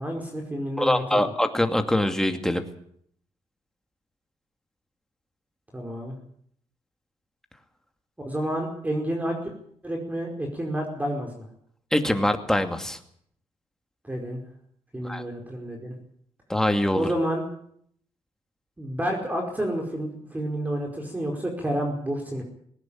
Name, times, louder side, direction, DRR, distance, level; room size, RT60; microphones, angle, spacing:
voice 1, 0.0-1.3 5.7-6.2 8.2-9.4 9.8-11.4 14.0-14.4 14.9-16.0 16.9-17.5 18.8-22.4, right 1 dB, 15° right, 2 dB, 4.9 m, -29 dB
voice 2, 0.8-2.7 11.9-13.0 15.0-15.2 16.5-17.1, left 1 dB, 5° left, 6 dB, 2.4 m, -23 dB
19.5 x 17.5 x 8.8 m, 0.66 s
cardioid pair, 100°, 12 cm